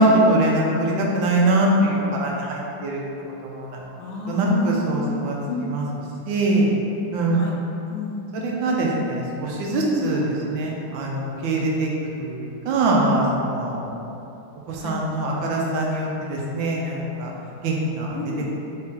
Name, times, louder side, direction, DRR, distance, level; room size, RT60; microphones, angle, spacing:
voice 1, 0.0-3.0 3.4-3.8 4.3-5.4 5.6-5.8 6.3-6.7 7.1-7.4 8.4-10.2 10.5-11.9 12.2-13.8 14.7-17.3 17.6-18.1, right 1 dB, 85° right, -2 dB, 1.4 m, -22 dB
voice 2, 4.0-5.7 7.3-7.5 7.9-8.3 9.9-10.1 14.8-15.0 18.1-18.5, left 4 dB, 80° left, -1 dB, 1.3 m, -31 dB
4.1 x 2.9 x 3.6 m, 2.9 s
omnidirectional pair, 2.1 m